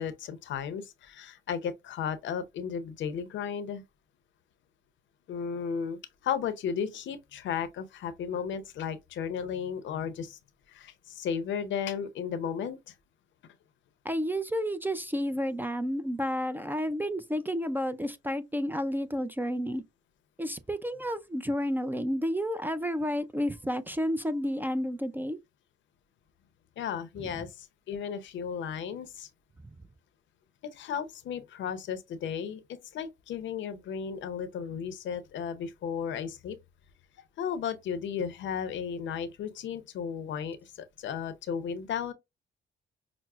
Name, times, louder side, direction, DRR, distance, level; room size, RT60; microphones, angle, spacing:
voice 1, 0.0-3.8 5.3-10.4 10.7-12.8 26.8-29.3 30.6-32.6 32.9-36.6 37.4-42.1, left 7 dB, 70° left, 0.6 m, -34 dB
voice 2, 14.0-19.8 20.4-25.4 27.2-27.3, equal, 10° right, 0.3 m, -31 dB
5.8 x 2.0 x 2.3 m
cardioid pair, 90°, 20 cm